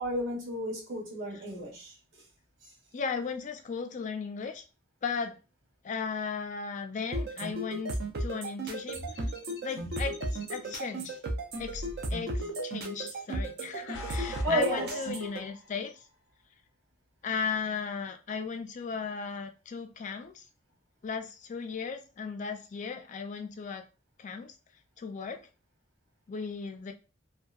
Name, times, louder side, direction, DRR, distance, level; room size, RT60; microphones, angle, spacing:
voice 1, 0.0-1.9 2.6-2.7 14.4-15.0, right 1 dB, 75° right, -1 dB, 1.1 m, -32 dB
voice 2, 2.9-4.6 5.0-5.4 5.8-9.0 9.6-11.2 11.6-16.0 17.2-20.4 21.0-23.8 24.2-24.5 25.0-25.4 26.3-26.9, left 5 dB, 40° left, 7 dB, 0.4 m, -36 dB
sound 1, 7.1-15.4, right 1 dB, 55° right, 0.5 m, -35 dB
sound 2, 8.9-10.6 11.5-13.0 13.7-15.8, equal, 90° left, 0.6 m, -43 dB
2.7 x 2.2 x 2.3 m, 0.31 s
head